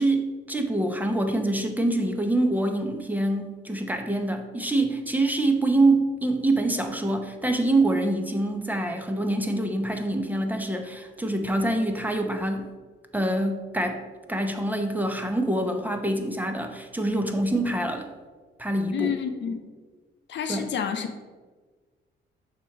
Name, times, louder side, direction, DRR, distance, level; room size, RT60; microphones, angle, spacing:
voice 1, 0.0-12.7 13.1-14.0 14.3-18.1 18.6-19.1 20.5-20.7, right 2 dB, 10° right, 5 dB, 0.7 m, -25 dB
voice 2, 18.9-19.6 20.3-21.2, left 7 dB, 65° left, 7 dB, 0.7 m, -29 dB
6.9 x 2.9 x 5.8 m, 1.4 s
cardioid pair, 90°, 20 cm